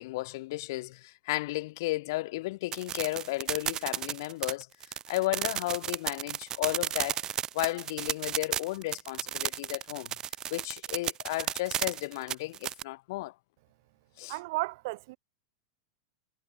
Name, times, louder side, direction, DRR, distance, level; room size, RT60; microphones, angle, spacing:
voice 1, 0.0-4.7 5.1-7.2 7.5-10.1 10.5-13.3 14.2-14.4, left 20 dB, 60° left, 1.6 m, -33 dB
sound 1, 2.7-12.8, right 10 dB, 30° right, 0.5 m, -33 dB
voice 2, 14.3-15.2, right 22 dB, 60° right, 1.2 m, -33 dB
hypercardioid pair, 100°, 2 cm